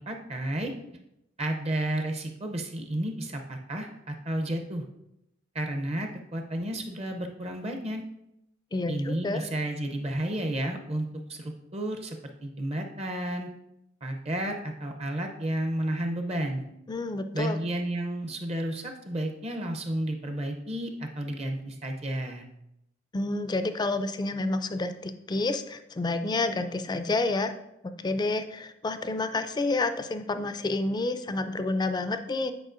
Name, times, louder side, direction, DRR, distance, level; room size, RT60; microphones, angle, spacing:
voice 1, 0.1-0.7 1.4-4.9 5.5-8.0 8.9-12.2 12.4-13.5 14.0-16.6 17.3-22.5, right 1 dB, 35° right, 4 dB, 0.6 m, -32 dB
voice 2, 8.7-9.4 16.9-17.6 23.1-27.5 28.0-32.5, left 2 dB, 20° left, 10 dB, 0.4 m, -29 dB
9.1 x 4.8 x 2.5 m, 0.84 s
head